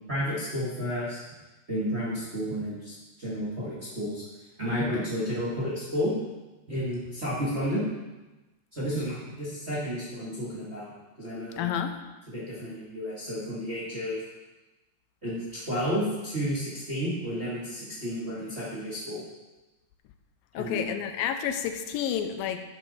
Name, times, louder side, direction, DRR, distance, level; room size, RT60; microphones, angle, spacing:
voice 1, 0.1-1.2 1.7-2.9 3.2-4.2 4.6-6.2 6.7-7.8 8.7-10.9 11.2-11.6 12.3-14.2 15.2-19.2 20.5-20.8, equal, 25° right, -8 dB, 1.5 m, -31 dB
voice 2, 11.6-12.0 20.5-22.6, left 9 dB, 90° left, 7 dB, 2.4 m, -30 dB
10.5 x 6.9 x 4.2 m, 1.1 s
omnidirectional pair, 4.1 m